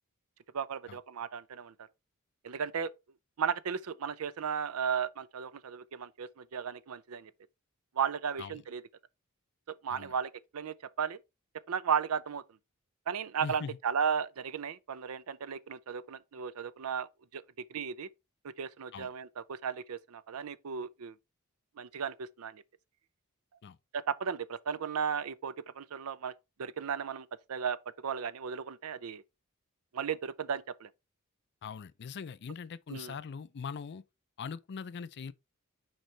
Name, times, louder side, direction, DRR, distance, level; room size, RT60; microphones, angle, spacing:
voice 1, 0.5-1.7 2.4-2.9 3.4-7.3 8.0-8.8 9.8-11.2 11.7-12.4 13.1-17.4 17.7-18.1 18.6-21.1 21.8-22.6 23.9-26.3 26.6-27.8 28.0-29.2 29.9-30.9 32.9-33.1, right 7 dB, 85° right, 0.5 m, -35 dB
voice 2, 13.4-13.8 18.9-19.1 23.6-23.8 31.6-34.0 34.4-35.3, left 6 dB, 55° left, 0.4 m, -41 dB
6.4 x 4.6 x 3.2 m
head